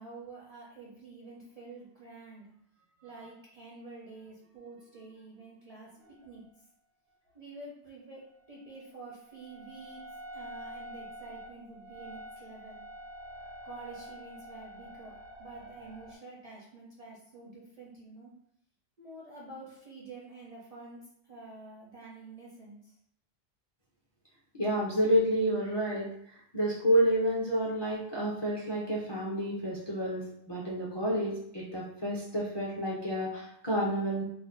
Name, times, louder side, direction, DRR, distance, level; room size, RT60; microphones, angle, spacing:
voice 1, 0.0-2.5 3.0-5.9 6.2-6.4 7.3-10.0 10.3-12.8 13.6-18.3 19.0-23.0, right 3 dB, 50° right, -5 dB, 0.5 m, -48 dB
sound 1, 3.0-3.3 4.2-4.5 4.8-5.4 6.0-6.5 8.4-16.2, right 1 dB, 75° right, 1.0 m, -47 dB
voice 2, 24.5-26.1 26.5-34.2, equal, 35° left, -6 dB, 0.4 m, -29 dB
2.4 x 2.1 x 3.7 m, 0.70 s
omnidirectional pair, 1.2 m